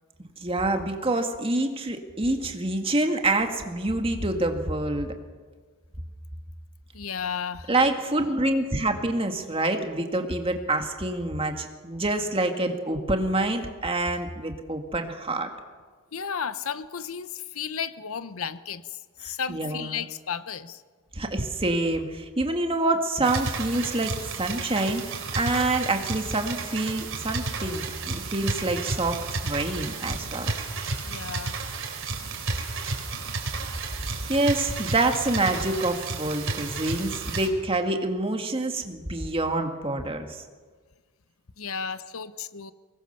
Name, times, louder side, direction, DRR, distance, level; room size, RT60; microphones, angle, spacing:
voice 1, 0.4-5.1 7.7-15.5 19.2-20.0 21.1-30.5 34.3-40.4, right 2 dB, 25° right, 4 dB, 2.1 m, -27 dB
voice 2, 6.9-7.7 16.1-20.8 31.0-31.6 41.6-42.7, left 7 dB, 70° left, 13 dB, 0.8 m, -33 dB
sound 1, 23.2-37.5, right 3 dB, 60° right, 3.8 m, -32 dB
24.0 x 20.0 x 6.8 m, 1.5 s
head